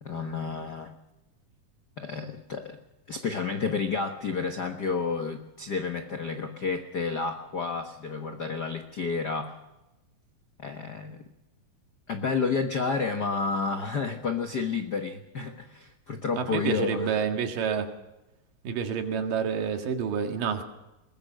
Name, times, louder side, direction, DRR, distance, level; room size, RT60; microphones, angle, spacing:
voice 1, 0.0-0.9 2.0-2.8 3.1-9.6 10.6-11.2 12.1-17.2, left 5 dB, 70° left, 5 dB, 1.0 m, -30 dB
voice 2, 16.4-17.9 18.6-20.6, right 7 dB, 85° right, 5 dB, 3.5 m, -28 dB
22.0 x 20.5 x 6.5 m, 0.98 s
omnidirectional pair, 3.8 m